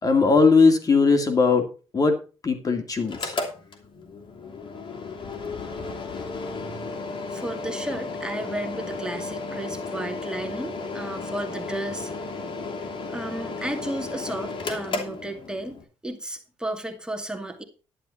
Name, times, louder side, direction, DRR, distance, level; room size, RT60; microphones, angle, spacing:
voice 1, 0.0-1.7 1.9-2.2 2.4-3.4, left 4 dB, 35° left, 6 dB, 2.3 m, -19 dB
Mechanical fan, 3.0-15.8, left 3 dB, 50° left, 2.8 m, -34 dB
voice 2, 6.5-6.9 7.3-12.1 13.1-15.8 16.0-17.6, right 1 dB, 10° right, 4 dB, 2.5 m, -33 dB
11.5 x 10.5 x 4.2 m, 0.33 s
cardioid pair, 95°, 11 cm